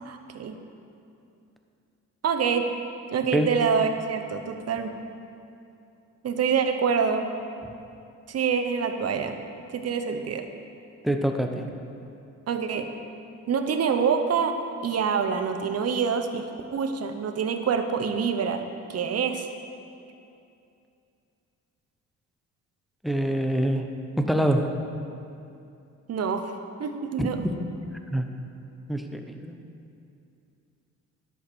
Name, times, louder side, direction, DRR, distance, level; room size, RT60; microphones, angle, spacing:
voice 1, 0.0-0.5 2.2-2.7 3.1-4.9 6.2-7.3 8.3-9.4 9.7-10.5 12.5-12.9 13.5-14.6 14.8-16.5 16.7-18.6 18.9-19.5 26.1-26.5 26.8-27.4, right 6 dB, 55° right, 6 dB, 1.1 m, -26 dB
voice 2, 11.0-11.6 23.0-23.9 24.2-24.8 27.2-27.6 28.1-28.3 28.9-29.5, right 1 dB, ahead, 5 dB, 1.0 m, -25 dB
11.5 x 7.7 x 6.4 m, 2.6 s
cardioid pair, 90°, 30 cm